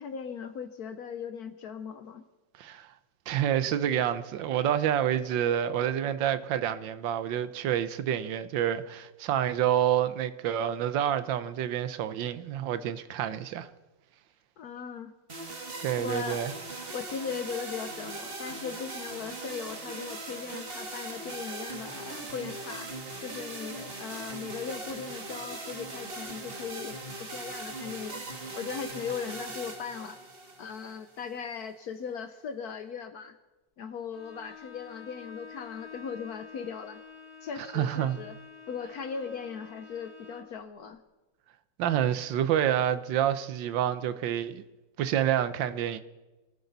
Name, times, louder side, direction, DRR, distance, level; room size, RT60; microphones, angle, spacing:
voice 1, 0.0-2.2 14.6-15.1 16.0-16.4 16.9-22.9 23.2-28.2 28.5-30.2 30.6-33.4 33.8-37.0 37.4-38.4 38.7-41.0, left 6 dB, 65° left, 1.2 m, -38 dB
voice 2, 2.6-2.9 3.3-13.7 15.8-16.5 37.7-38.2 41.8-44.6 45.0-46.0, right 10 dB, 85° right, 1.5 m, -28 dB
sound 1, 15.3-31.3, right 2 dB, 35° right, 1.6 m, -40 dB
Bowed string instrument, 34.1-40.6, left 6 dB, 20° left, 2.1 m, -48 dB
24.0 x 14.5 x 4.0 m
omnidirectional pair, 2.0 m